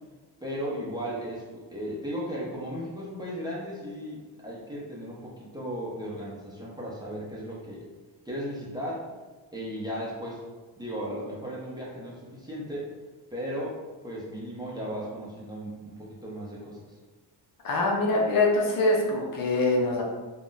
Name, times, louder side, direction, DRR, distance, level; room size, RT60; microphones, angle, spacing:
voice 1, 0.4-7.9 8.3-9.1 9.5-10.4 10.8-12.9 13.3-13.7 14.0-17.0, equal, 10° right, -6 dB, 0.6 m, -36 dB
voice 2, 17.6-20.0, left 2 dB, 45° left, -2 dB, 0.6 m, -24 dB
2.4 x 2.1 x 3.8 m, 1.3 s
cardioid pair, 120°, 47 cm